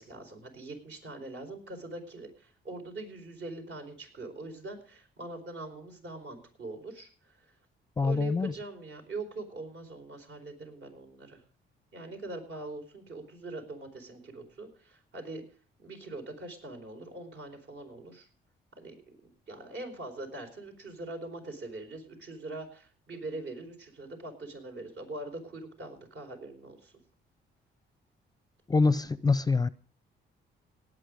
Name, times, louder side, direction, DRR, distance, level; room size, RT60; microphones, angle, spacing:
voice 1, 0.0-7.5 8.0-11.4 11.9-15.4 15.8-18.3 18.8-19.0 19.2-26.9, right 2 dB, 65° right, 4.5 m, -42 dB
voice 2, 8.0-8.5 28.7-29.7, left 4 dB, 20° left, 0.5 m, -25 dB
18.5 x 8.6 x 5.1 m
cardioid pair, 90°, 20 cm